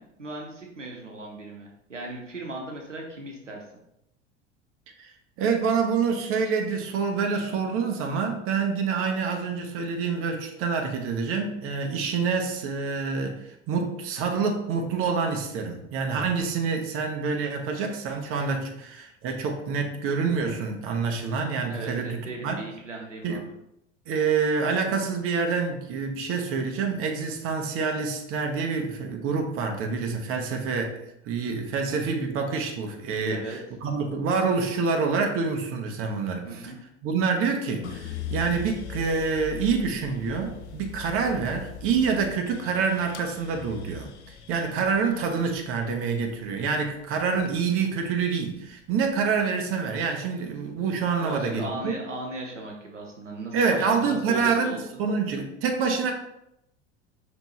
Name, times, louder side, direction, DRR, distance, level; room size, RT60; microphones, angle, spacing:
voice 1, 0.0-3.6 21.7-23.4 33.3-33.6 36.4-36.8 51.2-55.0, right 2 dB, 90° right, 1 dB, 0.8 m, -37 dB
voice 2, 5.0-22.6 23.2-23.4 24.1-31.0 31.2-36.7 37.0-51.9 53.5-56.1, right 5 dB, 40° right, 4 dB, 0.8 m, -27 dB
sound 1, 37.8-48.0 48.5-49.3, left 5 dB, 70° left, 0.6 m, -40 dB
5.3 x 3.1 x 3.0 m, 0.81 s
figure-of-eight pair, 75°, 36 cm